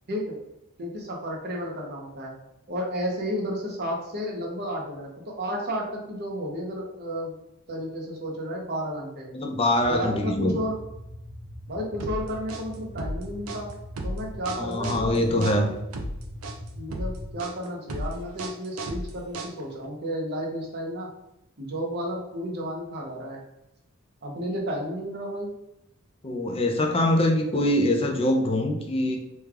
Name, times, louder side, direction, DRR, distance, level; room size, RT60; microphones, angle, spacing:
voice 1, 0.8-2.3 2.7-7.3 7.7-9.3 9.9-10.8 11.7-13.7 14.0-15.7 16.7-21.1 21.6-23.4 24.2-25.5, equal, 50° right, -1 dB, 0.8 m, -32 dB
voice 2, 9.3-10.6 14.6-15.7 26.2-29.2, left 1 dB, 25° left, 2 dB, 0.4 m, -23 dB
sound 1, 9.7-17.3, equal, 85° left, 1.0 m, -42 dB
sound 2, 12.0-19.9, right 1 dB, 75° right, 0.5 m, -34 dB
3.3 x 2.3 x 3.3 m, 0.87 s
head